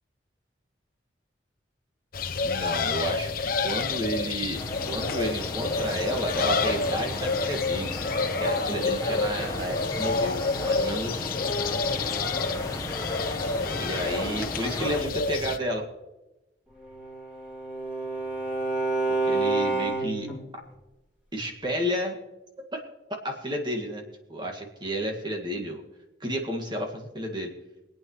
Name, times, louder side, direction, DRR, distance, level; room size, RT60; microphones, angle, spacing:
sound 1, 2.1-15.6, left 4 dB, 50° left, 0.8 m, -29 dB
voice 1, 2.4-4.6 4.9-8.0 8.4-11.4 13.8-15.8 19.1-20.3 21.3-22.2 22.7-22.8 23.2-24.0 24.3-25.8 26.2-27.5, equal, 25° right, 2 dB, 1.9 m, -31 dB
sound 2, 4.5-15.0, left 1 dB, 20° left, 1.1 m, -35 dB
Bowed string instrument, 16.8-20.4, right 3 dB, 5° right, 3.4 m, -28 dB
24.5 x 8.9 x 3.1 m, 1.0 s
head